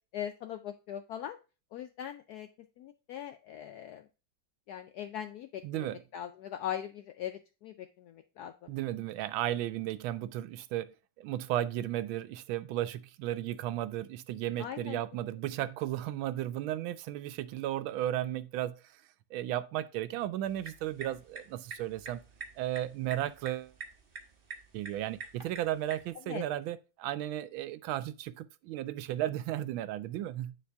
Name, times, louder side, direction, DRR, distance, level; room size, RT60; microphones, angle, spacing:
voice 1, 0.1-1.4 1.7-2.5 2.8-4.0 4.7-8.5 14.6-15.0 15.6-15.7 26.3-26.4, left 10 dB, 80° left, 0.8 m, -40 dB
voice 2, 5.6-6.0 8.7-18.8 19.3-22.2 22.6-23.7 24.7-30.5, right 13 dB, 90° right, 1.4 m, -34 dB
sound 1, 20.4-26.1, right 4 dB, 35° right, 1.0 m, -47 dB
9.5 x 3.4 x 3.4 m
omnidirectional pair, 2.2 m